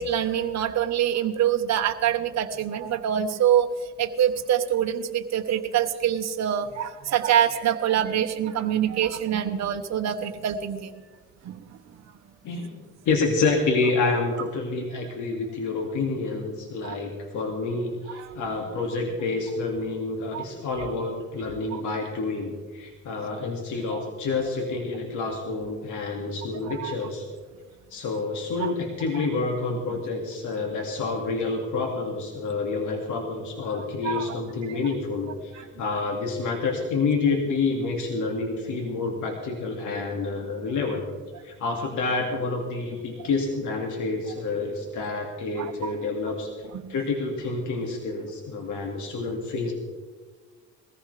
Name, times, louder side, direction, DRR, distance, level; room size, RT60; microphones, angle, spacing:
voice 1, 0.0-3.7 4.0-10.9 11.4-11.6 16.8-16.9 18.1-18.3 20.3-20.4 21.7-21.8 23.9-24.0 26.5-27.1 28.6-28.7 29.1-29.3 34.0-34.4 34.7-34.8 35.5-36.0 45.6-45.9 46.8-46.9, right 10 dB, 60° right, 5 dB, 1.0 m, -25 dB
voice 2, 12.4-12.8 13.0-27.2 27.9-41.1 41.4-49.7, left 3 dB, 80° left, 1 dB, 2.2 m, -28 dB
20.5 x 15.0 x 3.3 m, 1.4 s
cardioid pair, 90°, 30 cm